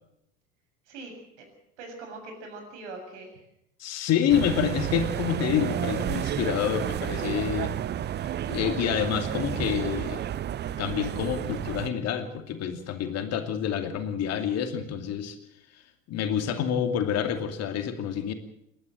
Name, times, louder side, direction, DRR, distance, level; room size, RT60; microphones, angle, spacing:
voice 1, 0.9-1.4 1.8-3.4, right 3 dB, 60° right, 4 dB, 7.3 m, -42 dB
voice 2, 3.8-7.7 8.4-10.2 10.8-15.4 16.1-18.3, left 9 dB, 40° left, 7 dB, 2.6 m, -28 dB
sound 1, 4.3-11.9, right 10 dB, 25° right, 0.8 m, -31 dB
29.0 x 11.5 x 7.7 m, 0.78 s
figure-of-eight pair, 70°, 39 cm